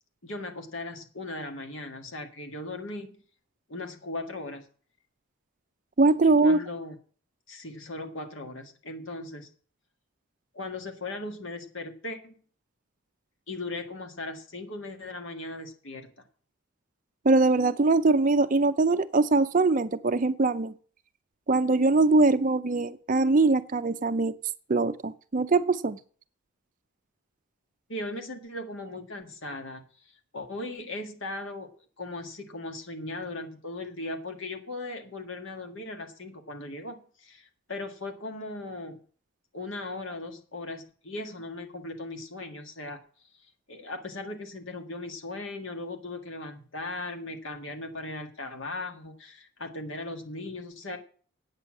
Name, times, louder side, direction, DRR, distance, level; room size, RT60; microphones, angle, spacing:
voice 1, 0.2-3.2 3.7-4.7 6.4-7.0 7.5-9.5 10.5-12.4 13.5-16.1 27.9-31.7 32.0-39.0 39.5-43.0 43.7-51.0, left 2 dB, 60° left, 1.7 m, -38 dB
voice 2, 6.0-6.6 17.2-20.7 21.5-24.3 24.7-26.0, right 3 dB, 35° right, 0.5 m, -22 dB
8.9 x 7.0 x 7.6 m
head